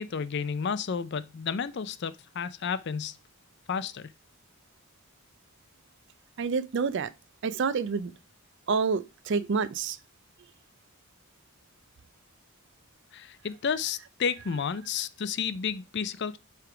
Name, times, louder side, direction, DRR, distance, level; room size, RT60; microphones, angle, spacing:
voice 1, 0.0-3.2 3.7-4.1 13.1-16.4, left 6 dB, 50° left, 0.4 m, -31 dB
voice 2, 6.4-7.1 7.4-8.1 8.7-10.0, right 5 dB, 55° right, 0.4 m, -28 dB
7.6 x 3.5 x 4.8 m
head